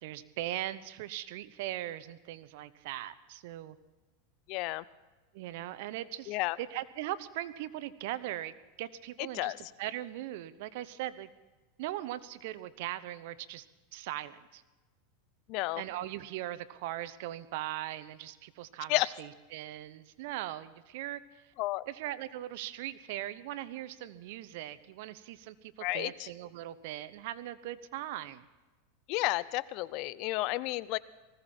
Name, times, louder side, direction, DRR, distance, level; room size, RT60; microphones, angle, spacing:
voice 1, 0.0-3.8 5.3-11.3 11.8-13.6 13.9-14.6 15.8-21.4 21.9-28.4, right 14 dB, 65° right, 15 dB, 0.9 m, -40 dB
voice 2, 4.5-4.8 6.3-6.6 9.3-9.6 15.5-15.8 18.9-19.1 21.6-21.8 25.8-26.3 29.1-31.0, left 20 dB, 55° left, 19 dB, 0.6 m, -31 dB
19.5 x 15.5 x 4.4 m, 1.2 s
supercardioid pair, 125°, 0 cm